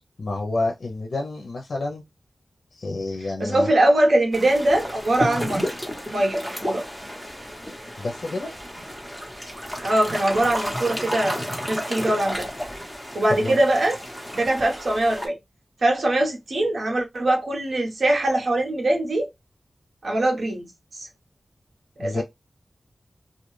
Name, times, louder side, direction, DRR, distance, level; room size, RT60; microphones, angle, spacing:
voice 1, 0.2-2.0 2.7-3.7 8.0-8.5 13.4-13.6 22.0-22.2, left 2 dB, 80° left, 0.5 m, -29 dB
voice 2, 3.4-5.6 6.1-6.8 9.8-11.4 11.7-12.5 13.1-14.0 14.3-15.4 15.8-19.3 20.0-20.7 20.9-21.1 22.0-22.2, right 1 dB, 80° right, 0.9 m, -22 dB
sound 1, 4.3-15.3, equal, 5° left, 1.0 m, -32 dB
2.3 x 2.2 x 3.0 m
wide cardioid pair, 60°, 0 cm